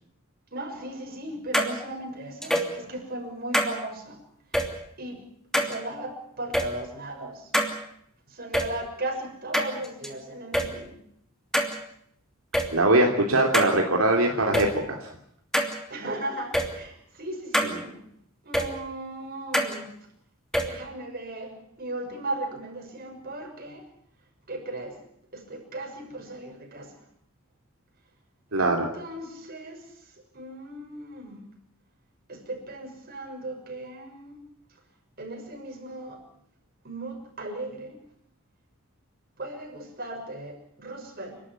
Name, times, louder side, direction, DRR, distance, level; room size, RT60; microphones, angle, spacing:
voice 1, 0.5-4.2 5.0-5.2 5.5-7.5 8.3-10.9 15.9-18.0 18.4-19.9 20.6-23.8 24.5-25.0 25.3-26.9 28.6-29.9 30.3-31.4 32.3-34.4 35.2-36.2 36.8-38.0 39.4-41.4, right 1 dB, 45° right, 2 dB, 6.6 m, -37 dB
sound 1, 1.5-1.7 2.4-2.7 3.5-3.7 4.5-4.7 5.5-5.7 6.5-6.7 7.5-7.7 8.5-8.7 9.5-10.1 10.5-10.7 11.5-11.7 12.5-12.7 13.5-13.7 14.5-14.7 15.5-15.7 16.5-16.7 17.5-17.7 18.5-18.7 19.5-19.7 20.5-20.7, equal, ahead, 2.9 m, -24 dB
voice 2, 12.7-15.1 17.6-17.7 28.5-28.9, right 2 dB, 80° right, 1 dB, 3.0 m, -22 dB
29.5 x 12.5 x 9.8 m, 0.73 s
head